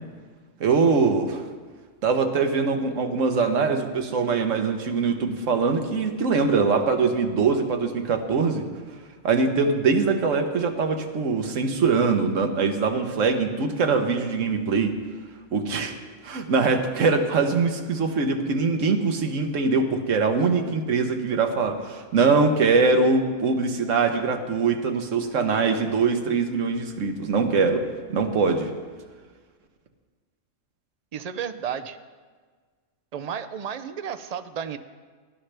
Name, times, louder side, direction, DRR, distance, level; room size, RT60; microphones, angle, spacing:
voice 1, 0.6-1.5 2.0-8.7 9.2-15.0 15.5-15.9 16.2-28.7, right 4 dB, 80° right, 6 dB, 1.4 m, -23 dB
voice 2, 31.1-32.0 33.1-34.8, right 8 dB, 55° right, 10 dB, 0.4 m, -32 dB
18.5 x 11.5 x 3.3 m, 1.5 s
omnidirectional pair, 1.3 m